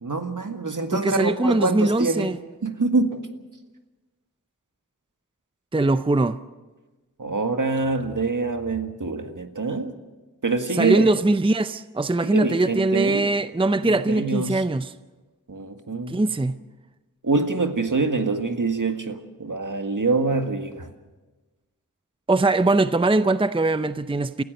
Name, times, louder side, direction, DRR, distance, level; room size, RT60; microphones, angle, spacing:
voice 1, 0.0-2.3 2.6-3.2 7.2-9.9 10.4-11.1 12.2-13.3 13.8-14.6 15.5-16.2 17.2-20.9, right 3 dB, 65° right, 1.8 m, -25 dB
voice 2, 0.9-2.4 5.7-6.4 10.7-14.9 16.1-16.6 22.3-24.4, right 2 dB, 15° right, 0.6 m, -21 dB
28.5 x 15.5 x 6.6 m
wide cardioid pair, 50°, 33 cm